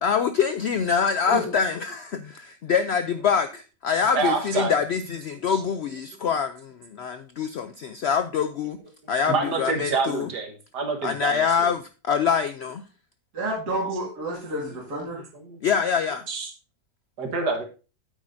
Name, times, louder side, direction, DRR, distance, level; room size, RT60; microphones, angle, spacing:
voice 1, 0.0-8.8 9.1-10.3 11.0-12.8 15.6-16.2, left 6 dB, 90° left, 10 dB, 0.5 m, -25 dB
voice 2, 4.1-4.7 5.5-5.6 9.3-11.7 15.3-15.6 16.3-16.5 17.2-17.6, right 4 dB, 90° right, 4 dB, 2.0 m, -27 dB
voice 3, 13.3-15.3, right 1 dB, 70° right, -5 dB, 2.7 m, -29 dB
9.0 x 8.4 x 2.6 m, 0.34 s
omnidirectional pair, 1.7 m